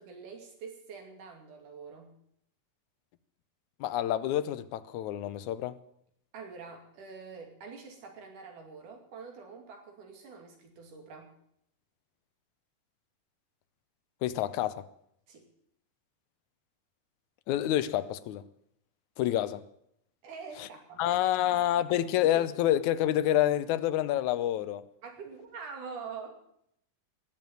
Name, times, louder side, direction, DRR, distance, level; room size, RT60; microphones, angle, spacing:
voice 1, 0.0-2.1 6.3-11.3 15.3-15.4 20.2-21.0 21.5-22.1 25.0-26.4, right 5 dB, 75° right, 4.1 m, -45 dB
voice 2, 3.8-5.8 14.2-14.9 17.5-18.4 19.2-19.6 20.6-20.7 21.0-24.8, left 12 dB, 75° left, 2.0 m, -28 dB
19.5 x 7.4 x 9.3 m
omnidirectional pair, 3.7 m